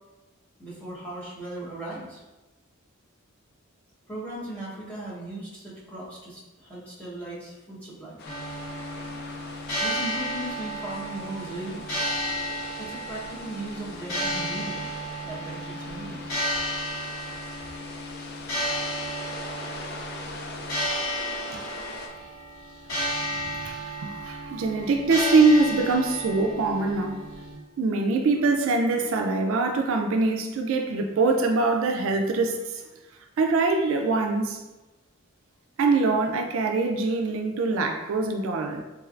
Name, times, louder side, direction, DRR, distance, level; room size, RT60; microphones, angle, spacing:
voice 1, 0.6-2.2 4.1-8.2 9.8-12.0 12.8-14.9 15.2-16.2, right 1 dB, 5° left, -9 dB, 1.0 m, -37 dB
sound 1, 8.2-27.6, equal, 85° left, 1.3 m, -33 dB
sound 2, 8.2-22.1, left 3 dB, 50° left, 0.4 m, -42 dB
voice 2, 23.0-27.2 27.8-32.8 33.4-34.6 35.8-38.8, right 3 dB, 70° right, 3 dB, 0.3 m, -24 dB
3.2 x 3.1 x 2.4 m, 1.1 s
head